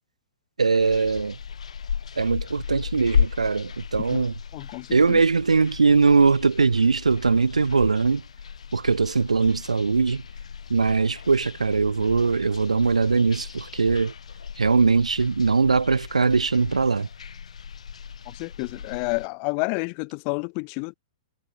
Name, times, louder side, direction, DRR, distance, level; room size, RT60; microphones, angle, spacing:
voice 1, 0.6-1.4 2.2-4.3 4.9-8.2 8.7-10.2 10.7-14.1 14.6-17.1, right 4 dB, 90° right, 0.9 m, -21 dB
sound 1, 0.8-19.3, left 7 dB, 75° left, 3.7 m, -35 dB
voice 2, 4.5-5.2 18.3-20.9, left 40 dB or more, 40° left, 0.5 m, -30 dB
hypercardioid pair, 115°, 3 cm